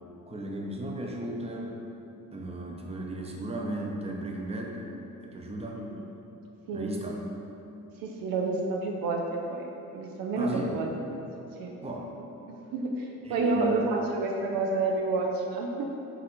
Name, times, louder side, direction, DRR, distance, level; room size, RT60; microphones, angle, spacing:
voice 1, 0.3-1.8 2.3-4.9 5.2-5.8 6.7-7.2 10.4-10.8 11.8-12.1 13.2-13.8, right 1 dB, 20° right, -1 dB, 0.6 m, -35 dB
voice 2, 8.0-9.6 9.9-10.9 11.6-11.7 12.5-15.9, right 3 dB, 85° right, 0 dB, 0.5 m, -29 dB
4.0 x 2.5 x 4.3 m, 3.0 s
cardioid pair, 70°, 34 cm